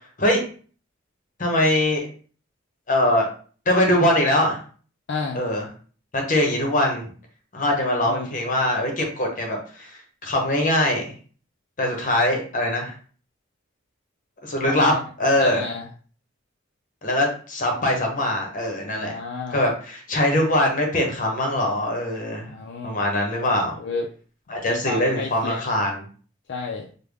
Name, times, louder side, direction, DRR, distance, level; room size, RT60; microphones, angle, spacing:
voice 1, 1.4-2.1 2.9-3.3 3.7-4.6 5.3-5.6 6.1-7.0 7.5-11.1 11.8-12.9 14.4-14.9 15.2-15.6 17.0-19.2 19.5-22.5 22.8-23.8 24.5-26.0, left 1 dB, 45° left, 1 dB, 1.0 m, -22 dB
voice 2, 5.1-5.4 7.6-8.3 14.7-15.0 15.4-15.9 18.9-19.6 22.5-23.0 23.8-24.1 24.7-25.8 26.5-26.9, left 4 dB, 60° left, 1 dB, 0.4 m, -32 dB
3.4 x 2.2 x 3.4 m, 0.41 s
head